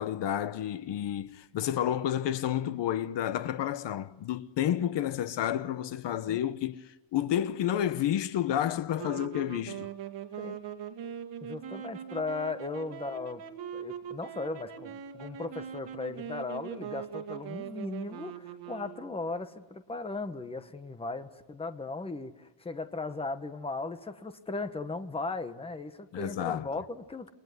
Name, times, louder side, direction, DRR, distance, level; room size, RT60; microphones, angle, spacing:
voice 1, 0.0-9.9 26.1-26.7, left 11 dB, 65° left, 1.0 m, -30 dB
sound 1, 9.0-19.4, right 8 dB, 60° right, 2.4 m, -41 dB
voice 2, 11.4-13.4 13.7-27.3, left 3 dB, 10° left, 1.1 m, -37 dB
28.5 x 22.0 x 9.5 m
cardioid pair, 175°, 47 cm